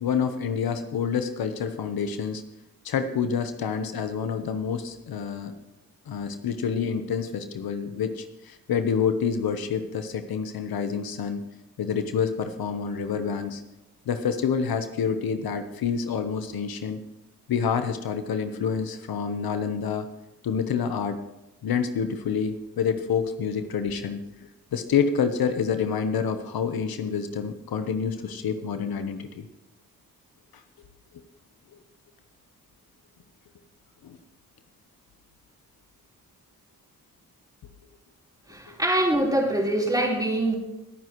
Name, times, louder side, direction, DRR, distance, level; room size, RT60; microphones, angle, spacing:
voice 1, 0.0-2.4 2.8-5.5 6.1-11.4 11.8-13.6 14.1-17.0 17.5-20.1 20.4-21.2 21.6-24.2 24.7-29.4 34.0-34.2 38.7-38.8, left 6 dB, 80° left, 8 dB, 1.0 m, -27 dB
voice 2, 38.5-40.5, right 1 dB, 10° right, -3 dB, 4.0 m, -24 dB
21.0 x 9.5 x 3.1 m, 0.97 s
cardioid pair, 75°, 36 cm